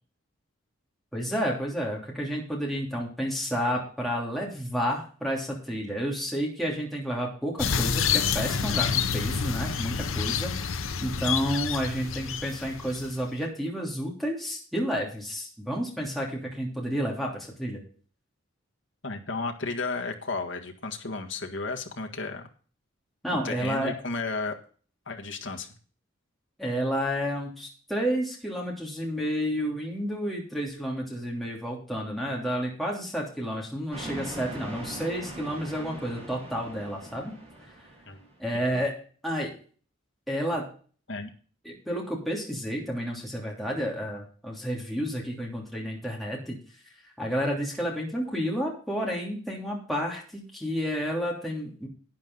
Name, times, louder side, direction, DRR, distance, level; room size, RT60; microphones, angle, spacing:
voice 1, 1.1-17.8 23.2-23.9 26.6-37.3 38.4-38.9 39.2-39.5 40.3-40.7 41.6-46.6 47.2-51.9, equal, ahead, -3 dB, 3.0 m, -30 dB
sound 1, 7.6-13.3, left 6 dB, 75° left, 0.9 m, -28 dB
voice 2, 19.0-22.5 23.4-24.5 25.1-25.7 38.1-38.2 38.7-38.8 41.1-41.3, left 3 dB, 60° left, 4 dB, 1.8 m, -33 dB
sound 2, 33.9-38.4, right 1 dB, 30° right, 6.1 m, -41 dB
11.5 x 9.5 x 3.9 m, 0.42 s
head